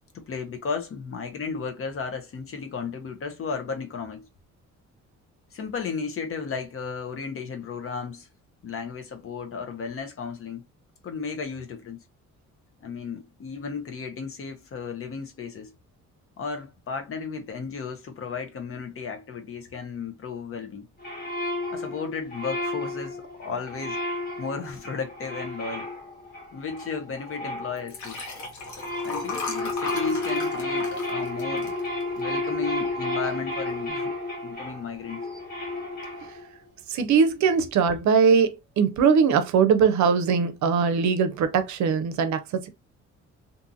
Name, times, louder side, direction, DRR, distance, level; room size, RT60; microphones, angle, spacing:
voice 1, 0.1-4.3 5.5-8.3 8.6-10.7 11.0-12.0 12.8-15.7 16.4-20.9 21.7-25.9 26.5-28.2 29.0-31.7 32.1-34.2 34.4-35.2, left 5 dB, 45° left, 0.8 m, -34 dB
sound 1, 21.0-28.3 28.6-36.6, left 2 dB, 30° left, 1.4 m, -32 dB
Liquid, 27.8-32.4 32.9-33.2 33.4-33.5, left 3 dB, 80° left, 1.1 m, -35 dB
voice 2, 36.9-42.7, right 6 dB, 70° right, 0.6 m, -21 dB
2.6 x 2.4 x 2.7 m
cardioid pair, 90°, 30 cm